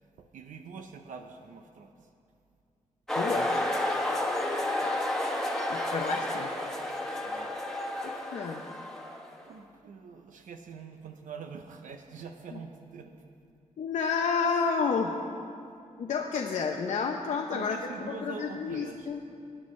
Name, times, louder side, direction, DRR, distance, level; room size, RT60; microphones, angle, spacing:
voice 1, 0.2-2.1 4.8-5.0 7.2-7.5 9.4-13.2 17.5-19.1, right 5 dB, 80° right, 5 dB, 0.6 m, -44 dB
sound 1, 3.1-9.4, left 1 dB, 5° left, 1.2 m, -31 dB
voice 2, 3.2-3.6 5.7-6.5 8.0-8.6 12.5-12.6 13.8-15.1 16.0-19.2, left 5 dB, 65° left, 1 dB, 0.7 m, -30 dB
21.0 x 9.7 x 3.2 m, 2.5 s
wide cardioid pair, 130°, 13 cm